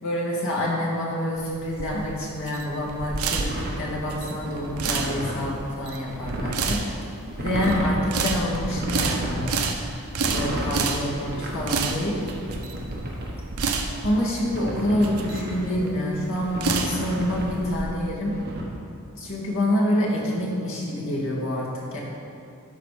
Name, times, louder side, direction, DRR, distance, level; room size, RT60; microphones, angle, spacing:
voice 1, 0.0-6.8 7.4-9.6 9.9-10.0 10.3-12.2 14.0-18.4 19.2-22.0, left 1 dB, 65° left, -4 dB, 1.9 m, -27 dB
sound 1, 1.4-17.8, right 4 dB, 70° right, 0.7 m, -30 dB
sound 2, 3.4-5.5 6.0-6.7 7.2-8.0 8.6-9.4 10.1-10.8 11.2-13.6 14.4-15.8 16.4-17.6 18.2-18.6, right 1 dB, 45° right, 1.3 m, -32 dB
12.5 x 4.2 x 5.0 m, 2.5 s
head